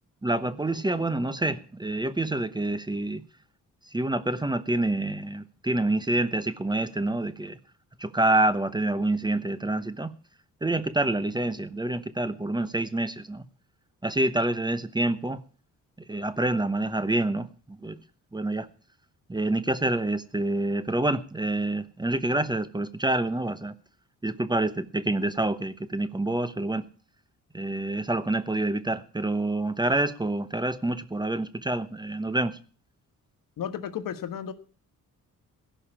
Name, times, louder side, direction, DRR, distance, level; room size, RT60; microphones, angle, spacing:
voice 1, 0.2-3.2 3.9-7.6 8.0-10.1 10.6-13.4 14.0-15.4 16.1-18.0 18.3-18.7 19.3-23.7 24.2-26.8 27.5-32.6, right 2 dB, 15° right, 13 dB, 0.9 m, -27 dB
voice 2, 33.6-34.5, left 9 dB, 75° left, 10 dB, 1.4 m, -33 dB
16.0 x 5.6 x 9.9 m, 0.41 s
cardioid pair, 100°, 33 cm